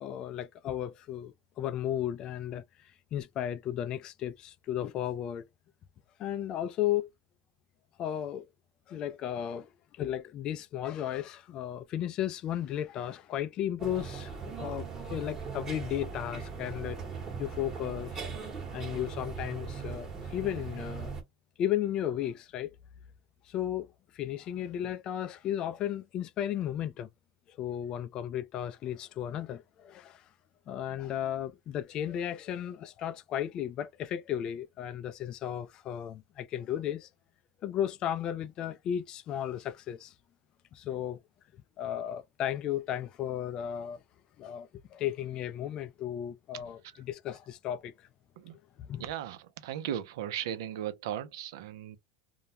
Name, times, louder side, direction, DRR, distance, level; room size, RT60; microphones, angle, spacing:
voice 1, 0.0-5.5 6.2-7.1 8.0-8.5 8.9-17.0 17.4-18.3 18.7-21.2 21.6-22.7 23.5-23.9 24.1-27.1 27.5-30.3 30.7-37.1 37.6-40.1 40.7-41.2 41.8-44.0 44.4-46.8 47.1-48.1 48.8-49.0, left 11 dB, 40° left, 0.4 m, -34 dB
sound 1, 13.8-21.2, right 5 dB, 25° right, 1.0 m, -39 dB
voice 2, 46.5-47.0 48.4-48.6 49.0-52.0, right 10 dB, 80° right, 0.6 m, -37 dB
2.3 x 2.1 x 2.7 m
supercardioid pair, 125°, 2 cm